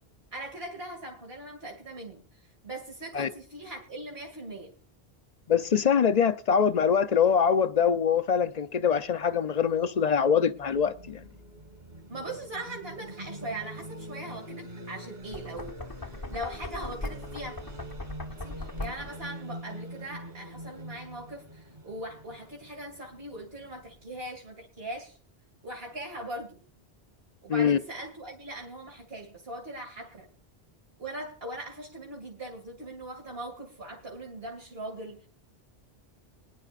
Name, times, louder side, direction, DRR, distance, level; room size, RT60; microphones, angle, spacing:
voice 1, 0.3-4.7 12.1-17.6 18.4-25.2 25.6-26.6 27.4-30.3 31.0-35.3, right 1 dB, 70° right, 2.7 m, -40 dB
voice 2, 5.5-11.2 27.5-27.8, left 7 dB, 45° left, 0.7 m, -24 dB
sound 1, 10.4-24.3, right 1 dB, 45° right, 2.9 m, -44 dB
Knock, 15.2-19.3, left 2 dB, 20° left, 0.9 m, -39 dB
23.5 x 10.5 x 2.5 m
omnidirectional pair, 1.0 m